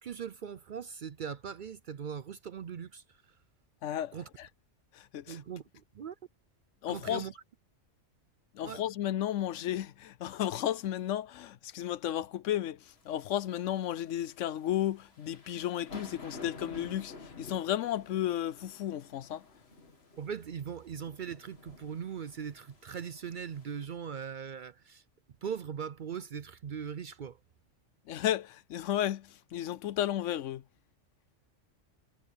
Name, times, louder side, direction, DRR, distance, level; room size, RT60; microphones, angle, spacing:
voice 1, 0.0-3.0 4.1-4.3 5.3-6.2 6.9-7.3 8.6-8.8 20.2-25.0 25.4-27.4, right 7 dB, 55° right, 0.6 m, -40 dB
voice 2, 3.8-4.5 4.9-5.4 6.8-7.3 8.5-19.4 28.1-30.6, left 12 dB, 85° left, 1.0 m, -33 dB
sound 1, 12.9-23.9, left 3 dB, 55° left, 2.5 m, -51 dB
omnidirectional pair, 1.2 m